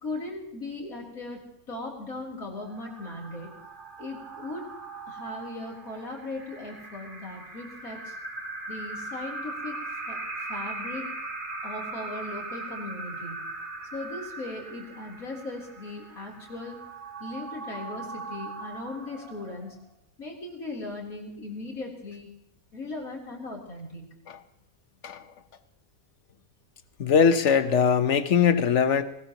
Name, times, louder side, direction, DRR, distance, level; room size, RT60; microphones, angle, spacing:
voice 1, 0.0-3.6 4.0-4.7 5.1-8.2 8.7-11.0 11.6-13.5 13.9-16.8 17.2-19.8 20.2-22.3 22.7-24.1, left 2 dB, 70° left, -1 dB, 4.2 m, -38 dB
sound 1, 2.5-19.9, right 3 dB, 35° right, 2.4 m, -39 dB
voice 2, 27.0-29.0, left 7 dB, 55° left, 11 dB, 1.3 m, -21 dB
20.5 x 19.0 x 3.0 m, 0.80 s
omnidirectional pair, 1.5 m